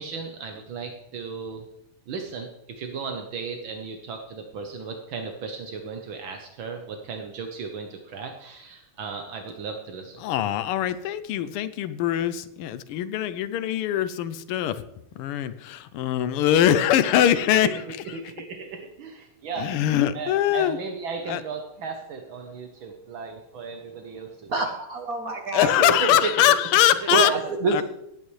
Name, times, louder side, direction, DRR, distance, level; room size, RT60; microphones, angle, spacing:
voice 1, 0.0-1.7 2.1-10.2 17.6-19.8 20.1-24.5 25.8-27.4, right 5 dB, 70° right, 4 dB, 1.6 m, -35 dB
voice 2, 10.2-14.8 15.2-17.8 19.6-20.8 21.3-21.4 25.5-27.3 27.7-27.8, left 11 dB, 90° left, 13 dB, 1.6 m, -22 dB
voice 3, 24.5-25.7 27.1-27.8, right 3 dB, 55° right, 4 dB, 1.1 m, -25 dB
18.0 x 8.7 x 3.2 m, 0.84 s
omnidirectional pair, 2.4 m